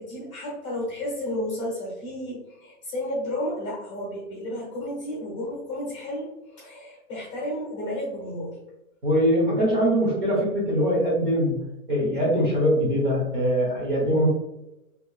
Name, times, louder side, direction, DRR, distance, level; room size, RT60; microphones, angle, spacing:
voice 1, 0.0-8.6, left 1 dB, 20° left, -5 dB, 0.9 m, -32 dB
voice 2, 9.0-11.5 11.9-14.3, equal, 35° right, -5 dB, 1.1 m, -22 dB
3.3 x 3.0 x 2.3 m, 0.91 s
hypercardioid pair, 175°, 44 cm